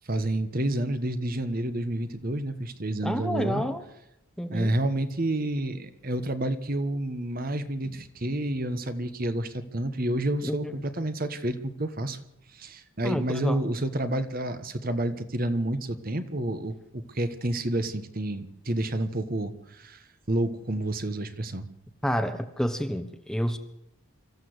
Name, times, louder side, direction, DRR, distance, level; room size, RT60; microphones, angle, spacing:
voice 1, 0.1-3.6 4.5-12.2 12.5-21.7, right 1 dB, 40° right, 10 dB, 1.3 m, -29 dB
voice 2, 3.0-3.8 4.4-4.7 10.4-10.8 13.0-13.6 22.0-23.6, equal, 5° left, 8 dB, 1.1 m, -29 dB
24.5 x 14.0 x 8.0 m, 0.85 s
head